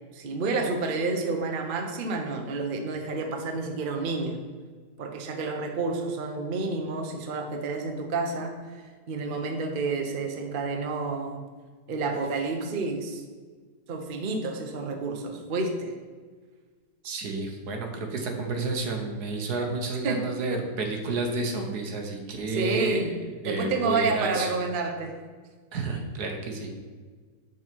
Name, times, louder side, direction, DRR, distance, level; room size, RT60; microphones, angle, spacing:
voice 1, 0.1-4.4 5.0-8.5 9.1-11.4 11.9-13.2 13.9-15.9 20.0-20.2 22.5-23.1 23.4-25.2, right 3 dB, 50° right, 3 dB, 0.6 m, -29 dB
voice 2, 17.0-23.0 23.4-24.5 25.7-26.8, right 3 dB, 65° right, 3 dB, 1.5 m, -30 dB
6.1 x 6.1 x 4.5 m, 1.5 s
omnidirectional pair, 1.9 m